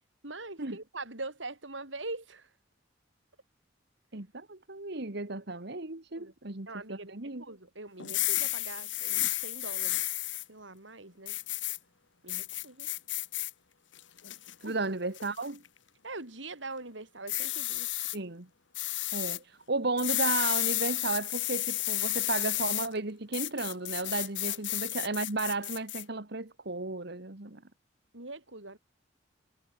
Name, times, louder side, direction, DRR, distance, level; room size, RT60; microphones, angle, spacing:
voice 1, 0.2-2.5 6.1-6.3 6.7-10.0 10.5-11.4 12.2-12.9 14.6-14.8 16.0-18.0 24.5-24.6 28.1-28.8, right 2 dB, 80° right, 5.7 m, -43 dB
voice 2, 4.1-7.4 14.6-15.6 18.1-18.5 19.1-27.6, right 3 dB, 60° right, 1.8 m, -34 dB
sound 1, 8.0-10.4 11.3-11.8 12.3-13.5 14.0-14.5 15.1-15.5 17.3-18.2 18.7-19.4 20.0-22.9 23.3-26.0, left 16 dB, 80° left, 2.2 m, -32 dB
head